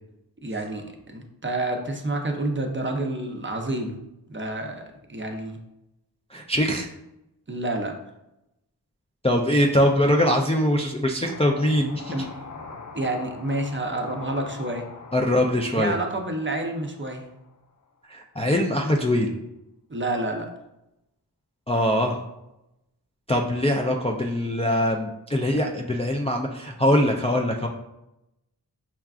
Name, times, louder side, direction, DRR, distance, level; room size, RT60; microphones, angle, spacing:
voice 1, 0.4-4.0 4.3-4.8 5.1-5.6 7.5-8.0 12.1-12.4 13.0-14.9 15.7-17.2 19.9-20.5, right 2 dB, 30° right, 3 dB, 0.6 m, -29 dB
voice 2, 6.3-6.9 9.2-12.2 15.1-16.0 18.1-19.3 21.7-22.2 23.3-27.7, left 1 dB, 15° left, 0 dB, 0.3 m, -22 dB
sound 1, 11.2-17.7, left 4 dB, 45° left, 0.6 m, -43 dB
5.6 x 2.4 x 2.3 m, 0.88 s
wide cardioid pair, 40°, 41 cm